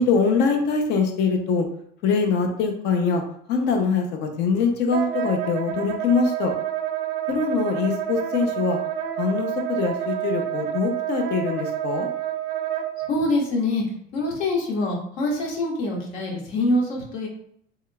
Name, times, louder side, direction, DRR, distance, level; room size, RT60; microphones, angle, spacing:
voice 1, 0.0-1.7 2.0-3.2 3.5-6.5 7.3-8.8 9.2-12.1, left 5 dB, 55° left, 4 dB, 0.6 m, -23 dB
Wind instrument woodwind instrument, 4.9-13.1, right 10 dB, 55° right, 0.4 m, -28 dB
voice 2, 13.1-17.3, left 2 dB, 75° left, -2 dB, 1.3 m, -25 dB
3.7 x 3.2 x 2.2 m, 0.67 s
cardioid pair, 155°, 21 cm